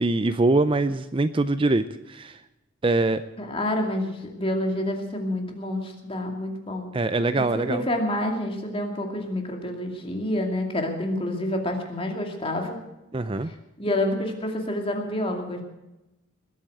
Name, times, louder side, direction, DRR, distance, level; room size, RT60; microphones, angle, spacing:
voice 1, 0.0-2.4 2.8-3.2 6.9-7.8 13.1-13.5, right 2 dB, 25° right, 12 dB, 0.5 m, -23 dB
voice 2, 3.4-6.9 7.3-12.8 13.8-15.6, left 1 dB, 25° left, 3 dB, 2.5 m, -28 dB
20.5 x 8.6 x 7.8 m, 0.97 s
head